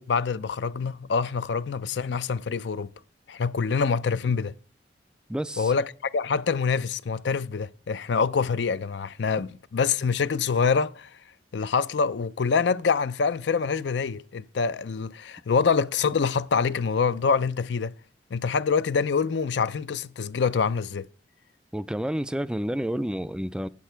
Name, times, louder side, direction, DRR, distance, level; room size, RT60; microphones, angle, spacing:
voice 1, 0.0-2.9 3.3-4.5 5.6-11.1 11.5-17.9 18.3-21.1, left 5 dB, 80° left, 0.5 m, -25 dB
voice 2, 5.3-5.7 21.7-23.7, equal, 5° right, 0.3 m, -29 dB
8.5 x 8.1 x 4.4 m
head